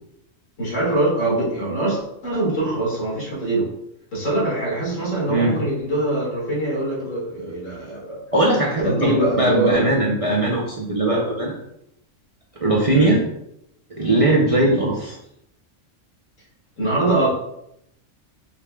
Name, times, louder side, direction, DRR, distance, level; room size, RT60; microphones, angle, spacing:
voice 1, 0.6-3.7 4.1-8.2 8.8-10.0 12.9-13.1 16.8-17.3, right 2 dB, 70° left, -6 dB, 2.2 m, -23 dB
voice 2, 8.3-11.5 12.6-13.2 14.0-15.2, right 2 dB, 45° right, -3 dB, 0.4 m, -19 dB
5.1 x 3.3 x 2.3 m, 0.77 s
omnidirectional pair, 1.4 m